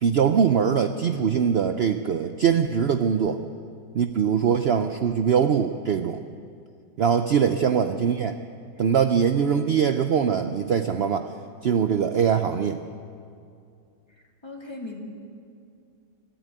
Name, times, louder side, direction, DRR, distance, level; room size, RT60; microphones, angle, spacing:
voice 1, 0.0-3.4 3.9-6.2 7.0-8.3 8.8-11.3 11.6-12.8, right 7 dB, 65° right, 8 dB, 0.6 m, -22 dB
voice 2, 14.4-15.0, left 2 dB, 15° left, 0 dB, 2.6 m, -38 dB
22.5 x 13.5 x 9.2 m, 2.4 s
omnidirectional pair, 1.8 m